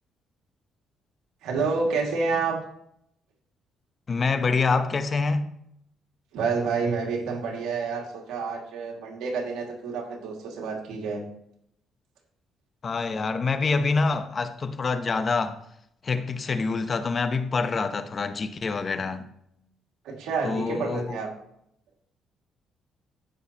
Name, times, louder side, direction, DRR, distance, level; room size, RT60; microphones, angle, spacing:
voice 1, 1.4-2.6 6.3-11.2 20.0-21.3, right 4 dB, 85° right, 2.2 m, -28 dB
voice 2, 4.1-5.4 12.8-15.6 16.0-19.3 20.4-21.2, left 4 dB, 40° left, 0.9 m, -26 dB
15.0 x 6.3 x 2.9 m
cardioid pair, 85°, 0 cm